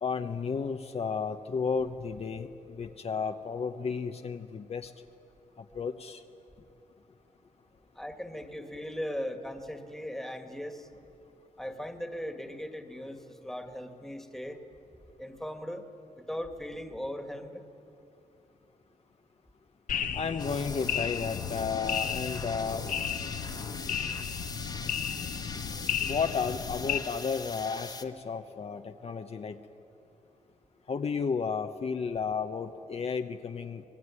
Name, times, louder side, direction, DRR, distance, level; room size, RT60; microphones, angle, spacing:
voice 1, 0.0-4.9 5.6-6.2 20.1-22.9 26.0-29.6 30.9-33.8, left 5 dB, 45° left, 6 dB, 0.9 m, -33 dB
voice 2, 7.9-10.9 11.6-14.6 15.2-15.8 16.2-17.6, equal, ahead, 6 dB, 1.9 m, -38 dB
sound 1, 19.9-27.0, left 8 dB, 75° left, 1.3 m, -34 dB
sound 2, 20.4-28.0, left 3 dB, 30° left, 1.5 m, -42 dB
26.0 x 20.5 x 9.7 m, 2.7 s
wide cardioid pair, 120°, 14 cm